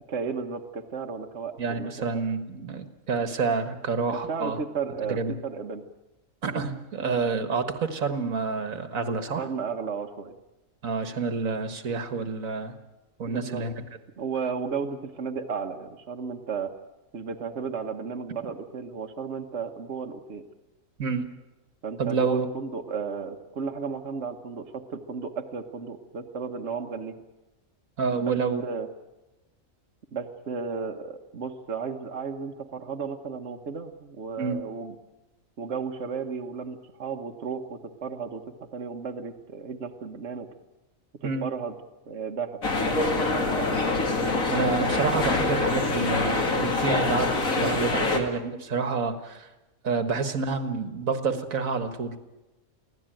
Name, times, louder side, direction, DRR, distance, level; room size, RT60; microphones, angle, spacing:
voice 1, 0.1-2.2 4.1-5.8 9.4-10.3 13.3-13.6 14.2-16.7 17.1-20.4 21.8-27.2 28.2-28.4 28.6-28.9 30.1-34.9 35.6-40.5 41.2-41.7 42.1-43.8 47.9-48.2, right 5 dB, 55° right, 3 dB, 1.4 m, -34 dB
voice 2, 1.6-4.6 5.1-5.4 6.4-9.5 10.8-12.7 13.2-13.7 21.0-21.3 22.0-22.5 28.0-28.6 34.4-34.6 41.2-41.4 44.5-49.5 49.8-52.2, right 4 dB, 70° right, 9 dB, 1.9 m, -28 dB
sound 1, 42.6-48.2, left 3 dB, 70° left, 2.7 m, -25 dB
24.0 x 16.5 x 9.0 m, 1.0 s
omnidirectional pair, 1.5 m